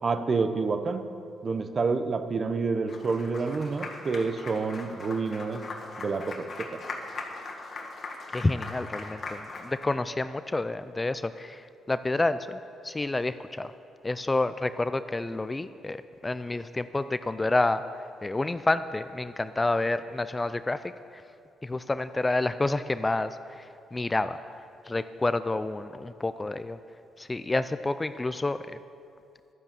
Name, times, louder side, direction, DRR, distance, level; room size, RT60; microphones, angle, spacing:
voice 1, 0.0-1.1 1.4-5.6 6.0-6.8, right 4 dB, 40° right, 9 dB, 0.8 m, -28 dB
Applause, 2.9-9.9, left 3 dB, 45° left, 1.7 m, -40 dB
voice 2, 8.3-12.6 12.8-13.7 14.0-17.8 18.2-21.2 21.6-24.4 24.9-26.8 27.2-28.8, left 2 dB, 20° left, 12 dB, 0.4 m, -29 dB
11.5 x 9.6 x 7.5 m, 2.6 s
cardioid pair, 90°, 0 cm